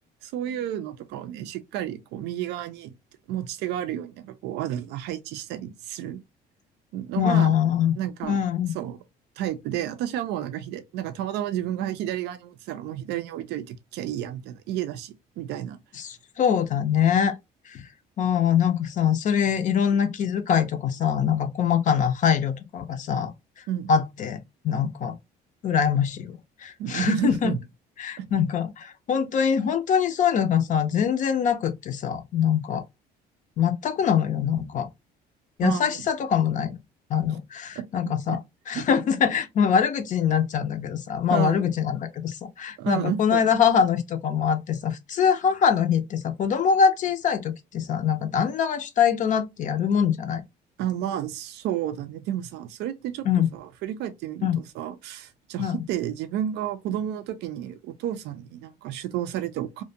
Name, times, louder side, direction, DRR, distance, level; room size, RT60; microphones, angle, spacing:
voice 1, 0.2-2.9 3.3-6.2 6.9-7.7 8.0-8.4 8.7-9.0 9.4-15.8 23.7-23.9 26.8-27.6 28.2-28.3 35.6-36.0 37.8-37.9 38.3-38.4 38.7-38.9 41.3-41.7 42.8-43.4 50.8-53.3 53.5-54.5 54.7-59.8, right 11 dB, 80° right, 0.4 m, -31 dB
voice 2, 7.2-8.0 8.2-8.7 16.0-17.4 17.7-17.8 18.2-23.3 23.6-24.4 24.6-25.1 25.6-27.5 28.0-32.8 33.6-34.9 35.6-36.8 37.1-38.4 38.7-50.4 53.3-53.5 54.4-54.6 55.6-55.8, left 7 dB, 50° left, 0.4 m, -23 dB
2.5 x 2.1 x 2.6 m
cardioid pair, 110°, 17 cm